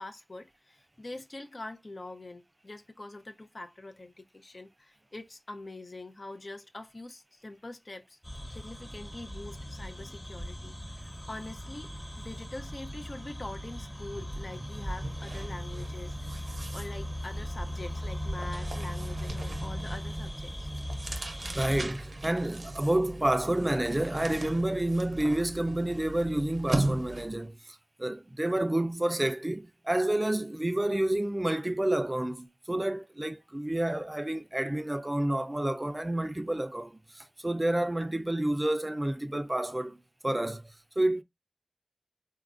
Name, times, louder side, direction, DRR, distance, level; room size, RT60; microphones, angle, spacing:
voice 1, 0.0-8.2 8.5-20.7, left 2 dB, 60° left, 0.6 m, -44 dB
sound 1, 8.2-21.9, equal, 20° left, 1.2 m, -38 dB
sound 2, 13.5-13.7 14.0-27.5, right 2 dB, 85° right, 0.5 m, -38 dB
voice 2, 21.2-41.2, right 1 dB, 25° right, 0.4 m, -29 dB
4.0 x 2.3 x 2.4 m
wide cardioid pair, 60°, 0 cm